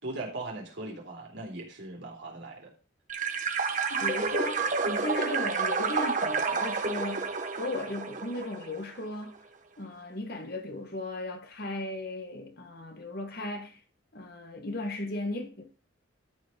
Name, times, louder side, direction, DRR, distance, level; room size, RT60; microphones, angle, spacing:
voice 1, 0.0-2.7, right 2 dB, 65° right, 3.9 m, -39 dB
sound 1, 3.1-8.8, right 4 dB, 40° right, 1.1 m, -30 dB
voice 2, 3.9-7.3 7.6-9.4 9.8-13.8 14.1-15.6, left 1 dB, 50° left, 1.9 m, -36 dB
13.0 x 5.3 x 5.3 m
head